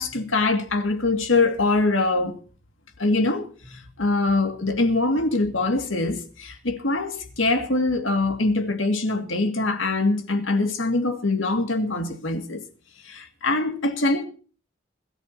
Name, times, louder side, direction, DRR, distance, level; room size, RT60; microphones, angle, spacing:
voice 1, 0.0-2.4 3.0-12.6 13.0-14.2, left 2 dB, 75° left, 2.1 m, -23 dB
21.5 x 13.0 x 2.8 m
head